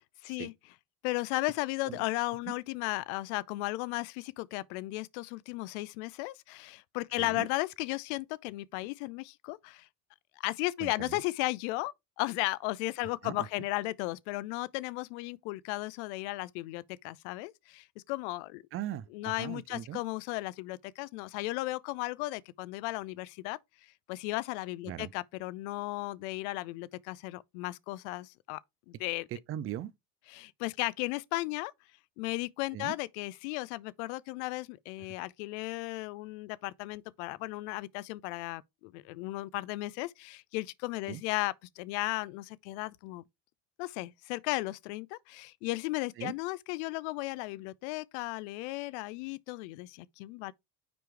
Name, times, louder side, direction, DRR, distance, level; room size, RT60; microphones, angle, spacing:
voice 1, 0.2-0.5 1.0-9.9 10.4-18.6 19.1-23.6 24.1-28.6 28.9-29.3 30.3-31.7 32.2-43.2 43.8-50.5, left 20 dB, 50° left, 0.6 m, -35 dB
voice 2, 7.2-7.5 10.8-11.2 13.2-13.4 18.7-20.0 24.9-25.1 29.3-29.9 32.7-33.0 41.1-41.2 46.2-46.3, right 12 dB, 30° right, 0.6 m, -39 dB
9.4 x 4.5 x 3.4 m
figure-of-eight pair, 65°, 46 cm